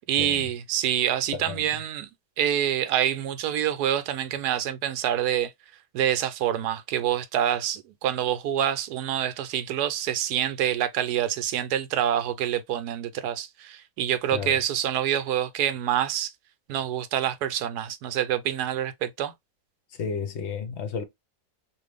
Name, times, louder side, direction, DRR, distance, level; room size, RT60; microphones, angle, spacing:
voice 1, 0.1-2.1 2.4-5.5 5.9-16.3 16.7-19.3, right 10 dB, 75° right, 1.1 m, -26 dB
voice 2, 1.3-1.6 14.3-14.6 20.0-21.0, left 6 dB, 55° left, 0.8 m, -32 dB
2.9 x 2.5 x 3.2 m
omnidirectional pair, 1.7 m